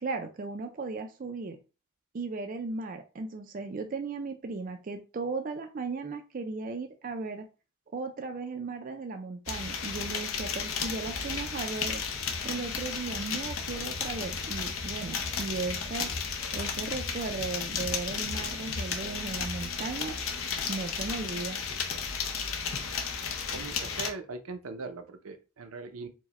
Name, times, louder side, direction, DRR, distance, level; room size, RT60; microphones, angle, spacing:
voice 1, 0.0-1.6 2.1-7.5 7.9-12.0 12.4-16.1 16.5-20.1 20.7-21.6, right 4 dB, 40° right, 5 dB, 0.4 m, -36 dB
sound 1, 9.5-24.1, left 5 dB, 70° left, 0.7 m, -34 dB
voice 2, 23.5-26.1, right 4 dB, 80° right, 7 dB, 0.6 m, -40 dB
4.7 x 2.1 x 4.1 m, 0.31 s
head